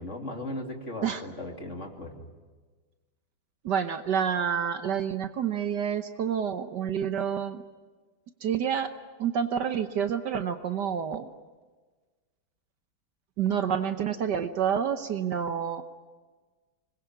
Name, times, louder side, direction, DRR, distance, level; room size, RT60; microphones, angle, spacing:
voice 1, 0.0-2.3, left 1 dB, 35° left, 3 dB, 2.9 m, -37 dB
voice 2, 3.6-7.6 8.4-8.9 9.2-11.3 13.4-15.8, right 8 dB, 60° right, 9 dB, 1.5 m, -28 dB
25.5 x 21.0 x 9.4 m, 1.4 s
omnidirectional pair, 2.2 m